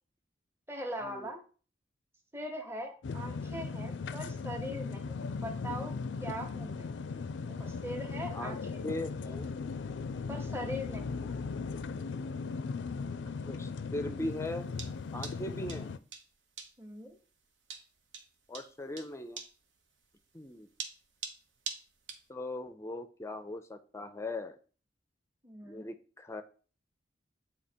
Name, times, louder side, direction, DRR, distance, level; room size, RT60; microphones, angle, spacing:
voice 1, 0.7-1.4 2.3-5.9 6.2-6.9 7.6-9.0 10.3-11.3 16.8-17.2 25.4-25.9, equal, 15° right, 2 dB, 0.9 m, -41 dB
sound 1, 3.0-16.0, left 4 dB, 85° left, 0.4 m, -38 dB
voice 2, 8.8-9.5 13.5-14.7 15.1-15.9 18.5-19.4 20.3-20.7 22.3-24.6 25.6-26.4, left 1 dB, 15° left, 9 dB, 0.4 m, -39 dB
sound 2, 14.2-22.3, right 5 dB, 85° right, 0.9 m, -44 dB
8.3 x 2.9 x 4.3 m, 0.39 s
head